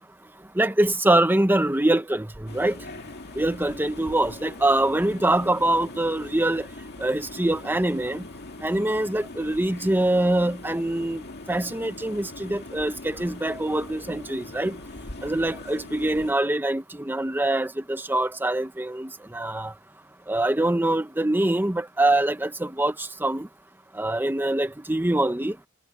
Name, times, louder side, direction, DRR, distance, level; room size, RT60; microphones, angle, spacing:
voice 1, 0.5-2.8 3.4-6.6 7.0-8.2 8.6-11.2 11.5-14.8 15.2-19.7 20.3-23.5 23.9-25.6, right 1 dB, 10° right, 0.9 m, -24 dB
sound 1, 2.5-16.3, left 2 dB, 50° left, 2.2 m, -41 dB
head